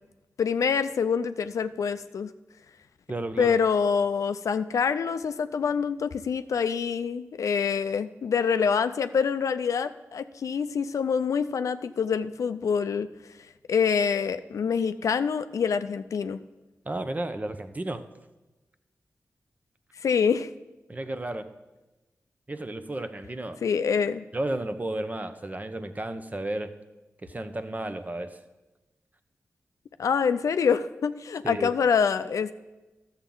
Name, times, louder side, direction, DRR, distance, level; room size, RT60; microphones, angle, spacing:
voice 1, 0.4-2.3 3.4-13.1 13.7-16.4 20.0-20.5 23.6-24.2 30.0-32.5, left 6 dB, 85° left, 11 dB, 0.4 m, -26 dB
voice 2, 3.1-3.6 16.8-18.0 20.9-21.5 22.5-23.6 24.3-26.7 27.2-28.4 31.4-31.7, right 1 dB, 30° right, 9 dB, 0.7 m, -33 dB
12.5 x 7.1 x 3.9 m, 1.1 s
cardioid pair, 50°, 5 cm